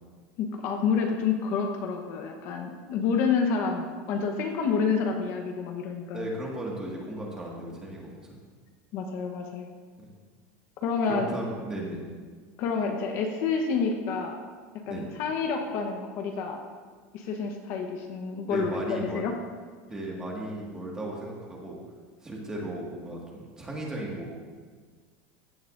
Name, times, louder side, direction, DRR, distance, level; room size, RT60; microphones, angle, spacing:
voice 1, 0.4-6.3 8.9-9.7 10.8-11.3 12.6-14.4 14.9-16.6 17.1-19.3, left 5 dB, 40° left, 3 dB, 1.0 m, -28 dB
voice 2, 6.1-8.1 10.0-10.1 11.1-12.0 14.9-15.1 18.5-19.2 19.9-21.8 22.2-24.3, right 1 dB, 10° right, -3 dB, 1.8 m, -35 dB
15.5 x 11.0 x 2.6 m, 1.5 s
supercardioid pair, 170°, 7 cm